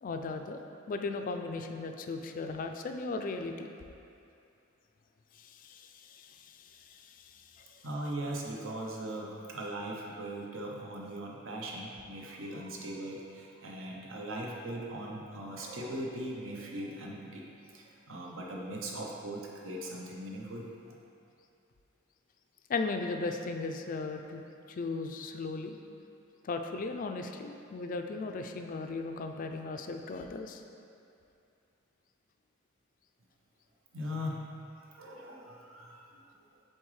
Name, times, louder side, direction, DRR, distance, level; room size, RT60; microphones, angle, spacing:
voice 1, 0.0-3.7 5.4-7.6 22.7-24.4 24.7-25.8 26.4-30.6, left 3 dB, 40° left, 5 dB, 0.3 m, -37 dB
voice 2, 7.8-17.5 17.7-21.0 33.9-34.4 34.9-36.1, right 1 dB, 70° right, -1 dB, 0.8 m, -39 dB
7.8 x 3.9 x 3.2 m, 2.6 s
head